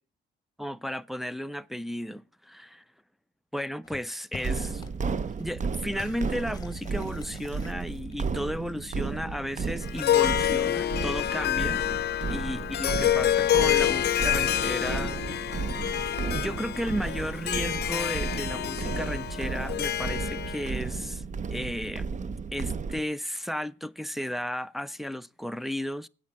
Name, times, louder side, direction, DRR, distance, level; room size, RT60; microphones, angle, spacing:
voice 1, 0.6-2.8 3.5-4.8 5.4-11.8 12.3-15.1 16.3-21.2 21.5-22.1 22.5-26.1, equal, ahead, 0.4 m, -34 dB
sound 1, 3.8-4.0 4.3-5.0 5.3-8.6, left 4 dB, 20° left, 1.3 m, -46 dB
sound 2, 4.4-23.0, right 5 dB, 40° right, 0.7 m, -33 dB
Harp, 9.8-20.7, left 12 dB, 55° left, 0.6 m, -27 dB
8.5 x 7.2 x 7.4 m
cardioid pair, 90°, 20 cm